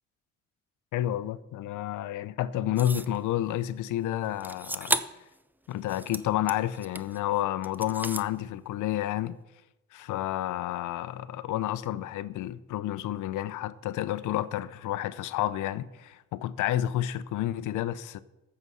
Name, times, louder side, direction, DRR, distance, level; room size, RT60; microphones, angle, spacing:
voice 1, 0.9-5.0 5.7-9.4 9.9-18.2, left 13 dB, 85° left, 0.6 m, -30 dB
sound 1, 2.8-3.2 4.4-5.3 5.7-7.2 7.6-8.3, right 1 dB, 5° right, 0.5 m, -33 dB
14.0 x 6.9 x 5.5 m
cardioid pair, 90°, 30 cm